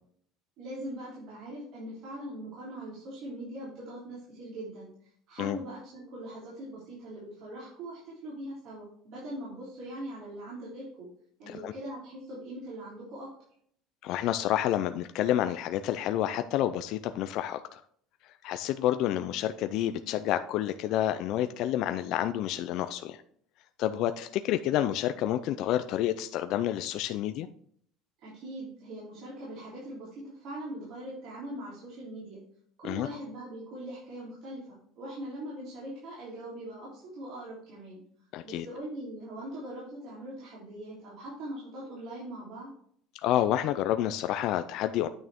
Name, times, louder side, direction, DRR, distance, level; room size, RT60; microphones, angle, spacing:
voice 1, 0.6-4.9 5.3-11.1 11.4-13.3 28.2-32.4 32.8-38.0 38.4-42.7, right 1 dB, 50° right, -7 dB, 3.4 m, -41 dB
voice 2, 14.0-17.8 18.2-23.2 23.8-27.5 32.8-33.1 38.3-38.7 43.2-45.1, left 12 dB, 50° left, 9 dB, 0.4 m, -29 dB
9.0 x 6.3 x 3.6 m, 0.63 s
cardioid pair, 175°, 0 cm